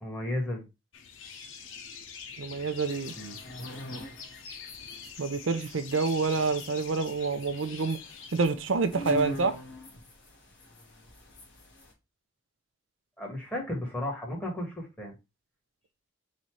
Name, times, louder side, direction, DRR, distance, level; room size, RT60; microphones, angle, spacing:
voice 1, 0.0-0.6 3.1-3.4 13.2-15.1, left 1 dB, 10° left, 1.7 m, -34 dB
sound 1, 0.9-8.4, left 6 dB, 85° left, 0.8 m, -45 dB
voice 2, 2.4-3.1 5.2-8.0 8.3-9.5, right 4 dB, 80° right, 0.6 m, -27 dB
sound 2, 2.8-11.9, right 1 dB, 65° left, 1.7 m, -43 dB
4.1 x 2.7 x 4.6 m
head